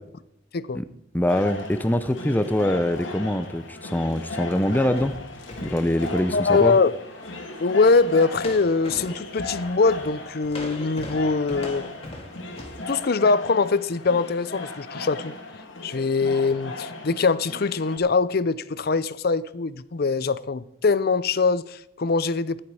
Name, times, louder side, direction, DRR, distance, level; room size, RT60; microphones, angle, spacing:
voice 1, 1.1-5.1 5.6-6.7, left 1 dB, 10° left, 0.6 m, -24 dB
sound 1, 1.3-18.0, left 2 dB, 85° left, 2.3 m, -37 dB
sound 2, 4.7-6.9 7.2-7.4 7.8-8.0 8.3-12.9, left 1 dB, 30° left, 2.2 m, -41 dB
voice 2, 6.3-6.9 7.6-11.9 12.9-15.3 15.8-22.6, left 4 dB, 55° left, 0.6 m, -22 dB
15.0 x 11.5 x 4.8 m
head